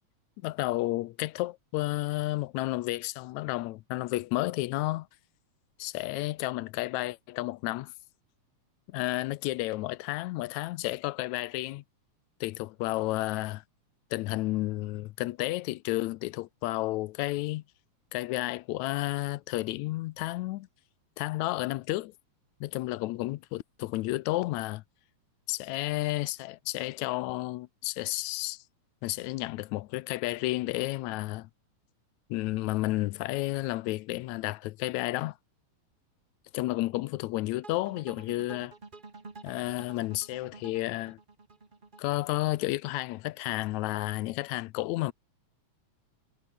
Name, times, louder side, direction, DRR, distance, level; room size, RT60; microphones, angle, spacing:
voice 1, 0.4-5.1 5.8-7.9 8.9-11.8 12.4-13.6 14.1-17.6 18.1-20.7 21.2-22.1 22.6-24.8 25.5-28.6 29.0-31.5 32.3-35.4 36.5-38.7 39.4-41.2 42.0-45.1, left 18 dB, 80° left, 1.9 m, -31 dB
sound 1, 37.6-42.7, right 3 dB, 20° right, 1.3 m, -49 dB
omnidirectional pair, 3.4 m